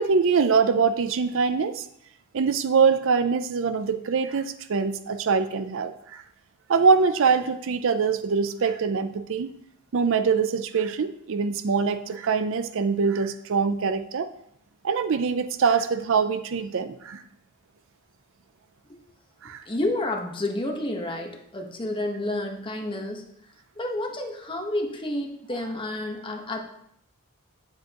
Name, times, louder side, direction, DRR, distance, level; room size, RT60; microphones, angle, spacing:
voice 1, 0.0-1.9 2.3-6.2 6.7-9.5 9.9-14.3 14.8-17.2 19.4-19.6, right 5 dB, 65° right, 11 dB, 0.5 m, -23 dB
voice 2, 19.7-23.2 23.8-26.6, left 1 dB, 25° left, 2 dB, 1.2 m, -30 dB
9.6 x 7.4 x 3.0 m, 0.72 s
head